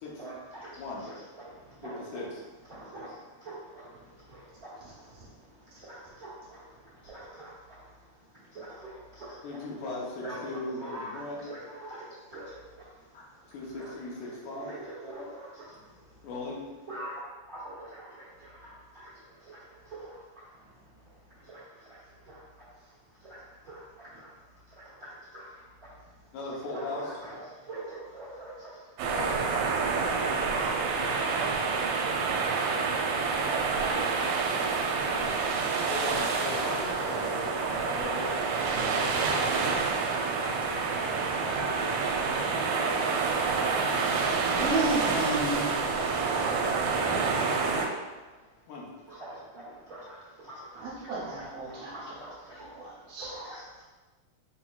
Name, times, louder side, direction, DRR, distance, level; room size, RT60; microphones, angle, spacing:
voice 1, 0.2-2.0 2.7-5.0 5.4-5.5 5.8-7.8 8.5-9.4 9.8-9.9 10.2-10.4 10.8-12.9 13.7-13.9 14.3-15.9 16.9-20.7 21.4-22.7 23.2-24.3 24.7-25.9 26.7-28.8 29.5-29.7 30.5-31.8 32.3-33.3 36.6-41.7 45.2-45.3 49.1-52.8 53.2-53.8, right 1 dB, 45° right, -9 dB, 1.2 m, -45 dB
voice 2, 0.8-1.1 1.8-2.4 9.4-11.6 13.1-13.2 13.5-14.8 16.2-16.6 26.3-27.1 29.1-29.4 35.9-37.2 37.6-38.4 40.4-40.6 48.7-48.9, left 2 dB, 80° left, -3 dB, 2.2 m, -38 dB
voice 3, 4.8-5.3 5.7-5.8 44.5-45.7 50.8-53.3, right 2 dB, 65° right, -7 dB, 1.9 m, -33 dB
sound 1, 29.0-47.9, right 4 dB, 80° right, 1.9 m, -28 dB
6.2 x 2.9 x 2.3 m, 1.2 s
omnidirectional pair, 3.4 m